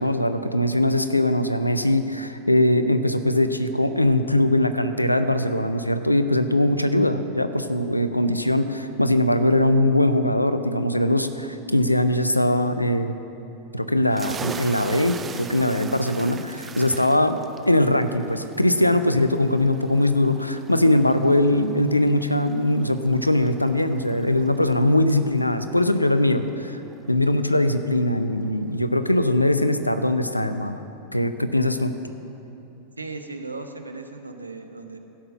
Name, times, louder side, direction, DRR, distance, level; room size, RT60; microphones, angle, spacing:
voice 1, 0.0-13.1 13.7-17.4 17.7-26.8 27.1-30.8 31.1-31.9, left 1 dB, 85° left, 10 dB, 0.5 m, -21 dB
sound 1, 14.1-27.5, right 5 dB, 20° right, 0.5 m, -41 dB
voice 2, 33.0-35.0, right 3 dB, 80° right, 5 dB, 0.8 m, -36 dB
15.5 x 5.8 x 6.1 m, 2.9 s
figure-of-eight pair, 90°, 0 cm